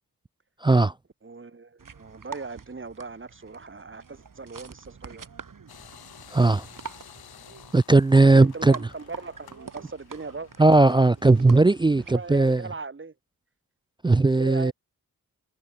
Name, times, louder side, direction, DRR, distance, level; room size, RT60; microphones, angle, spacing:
voice 1, 0.6-0.9 6.3-6.7 7.7-8.8 10.6-12.7 14.0-14.7, right 2 dB, 15° right, 0.4 m, -18 dB
voice 2, 1.2-5.3 8.3-10.5 12.1-13.1 14.3-14.7, right 4 dB, 35° right, 2.0 m, -38 dB
sound 1, 1.8-12.1, right 6 dB, 60° right, 4.0 m, -45 dB
sound 2, 5.7-12.7, left 9 dB, 80° left, 1.9 m, -52 dB
supercardioid pair, 40°, 37 cm